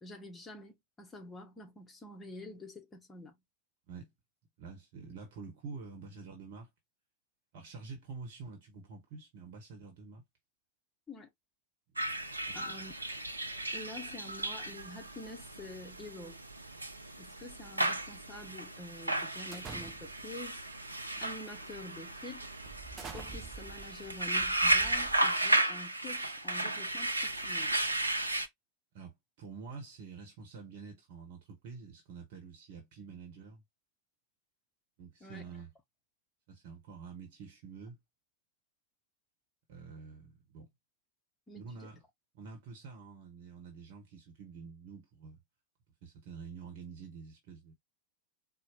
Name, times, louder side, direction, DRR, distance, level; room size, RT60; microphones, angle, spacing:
voice 1, 0.0-3.4 11.1-11.3 12.5-12.9 13.7-16.4 17.2-20.6 21.2-22.5 23.1-27.7 35.2-35.4 41.5-41.9, left 2 dB, 15° left, 1.0 m, -47 dB
voice 2, 4.6-6.7 7.5-10.2 12.1-12.6 28.9-29.1 29.4-33.6 35.0-35.7 36.5-38.0 39.7-40.7 41.5-42.0 42.3-45.4 46.0-47.7, right 5 dB, 50° right, 1.1 m, -48 dB
sound 1, 12.0-28.5, right 1 dB, 85° right, 0.5 m, -34 dB
sound 2, 19.5-20.3 21.1-21.4 21.9-22.0 22.7-25.6, right 5 dB, 25° right, 0.7 m, -48 dB
4.4 x 2.3 x 2.9 m
figure-of-eight pair, 90°, 0 cm